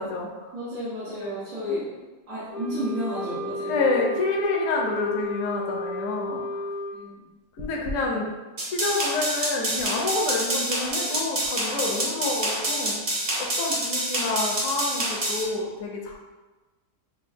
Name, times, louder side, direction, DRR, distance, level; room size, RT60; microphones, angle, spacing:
voice 1, 0.0-0.5 1.2-1.3 1.7-1.8 3.7-6.6 7.6-8.3 8.7-13.0 13.4-16.2, left 3 dB, 65° left, -1 dB, 1.0 m, -28 dB
voice 2, 0.5-1.9 2.3-3.8 6.9-7.3, equal, 75° right, -11 dB, 1.5 m, -32 dB
Wind instrument woodwind instrument, 2.5-7.0, left 1 dB, 90° left, 1.4 m, -33 dB
sound 1, 8.6-15.4, right 1 dB, 45° right, 1.0 m, -27 dB
6.3 x 2.5 x 2.6 m, 1.2 s
omnidirectional pair, 1.6 m